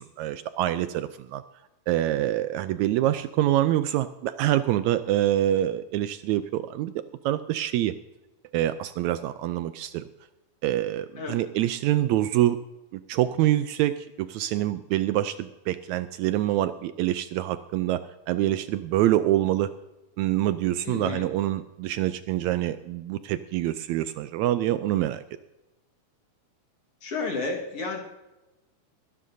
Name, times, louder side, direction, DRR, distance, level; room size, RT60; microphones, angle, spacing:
voice 1, 0.0-1.4 1.9-6.9 7.2-7.9 8.5-10.0 10.6-12.6 12.9-13.9 14.2-18.0 18.3-19.7 20.2-25.2, right 13 dB, 80° right, 12 dB, 1.7 m, -25 dB
voice 2, 20.8-21.3 27.0-28.0, left 3 dB, 55° left, 0 dB, 2.4 m, -31 dB
23.0 x 11.5 x 2.7 m, 1.0 s
omnidirectional pair, 3.7 m